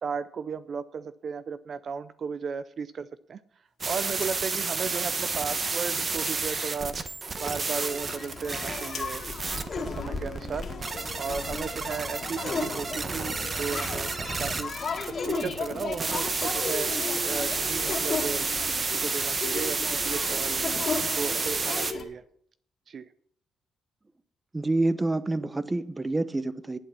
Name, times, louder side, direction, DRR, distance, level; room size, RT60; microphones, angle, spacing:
voice 1, 0.0-3.4 3.9-9.2 9.5-18.5 18.7-22.2 22.9-23.1, right 6 dB, 50° right, 14 dB, 0.5 m, -35 dB
sound 1, 3.7-4.5 5.5-6.6 6.8-7.7 8.1-8.2 8.5-8.6 8.9-9.2 10.5-11.3 11.5-11.6, left 7 dB, 65° left, 2.6 m, -47 dB
sound 2, 3.8-21.9, right 4 dB, 35° right, 1.1 m, -31 dB
sound 3, 7.7-22.0, left 4 dB, 45° left, 2.2 m, -35 dB
voice 2, 24.5-26.8, right 2 dB, 20° right, 14 dB, 0.7 m, -27 dB
11.0 x 8.5 x 5.7 m, 0.63 s
cardioid pair, 90°, 0 cm